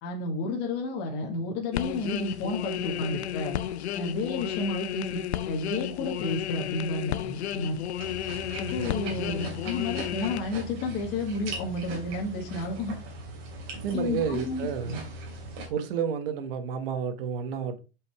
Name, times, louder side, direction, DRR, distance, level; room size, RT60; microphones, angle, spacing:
voice 1, 0.0-3.6 3.9-5.2 5.5-7.8 8.6-12.9 13.9-15.0, left 2 dB, 30° left, 1.9 m, -31 dB
sound 1, 1.7-10.4, left 11 dB, 85° left, 0.8 m, -33 dB
sound 2, 8.0-15.7, right 2 dB, 40° right, 2.8 m, -40 dB
voice 2, 13.8-15.0 15.7-17.8, right 7 dB, 60° right, 1.6 m, -31 dB
7.7 x 5.5 x 3.6 m
supercardioid pair, 160°, 32 cm